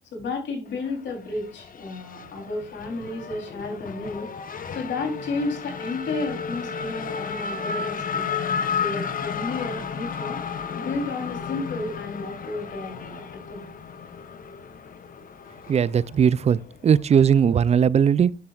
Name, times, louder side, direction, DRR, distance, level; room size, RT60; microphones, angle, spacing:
voice 1, 0.1-4.3 4.7-8.3 8.7-10.4 10.8-13.7, left 3 dB, 65° left, 3.4 m, -32 dB
Race car auto racing / Accelerating revving vroom, 0.7-17.7, left 6 dB, 45° left, 1.0 m, -33 dB
voice 2, 15.7-18.4, right 7 dB, 35° right, 0.4 m, -19 dB
10.5 x 7.5 x 2.4 m
cardioid pair, 90°, 20 cm